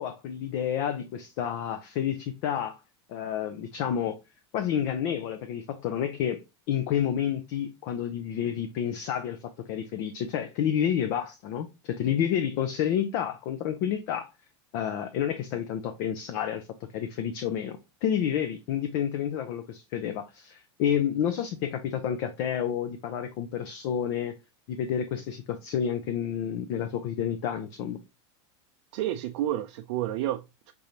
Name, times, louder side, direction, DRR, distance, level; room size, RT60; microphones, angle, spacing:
voice 1, 0.0-2.8 3.1-4.2 4.5-6.4 6.7-14.3 14.7-16.7 16.9-24.4 24.7-28.0, left 9 dB, 50° left, 0.6 m, -29 dB
voice 2, 28.9-30.7, right 12 dB, 70° right, 0.4 m, -30 dB
5.3 x 3.2 x 2.8 m
supercardioid pair, 150°, 15 cm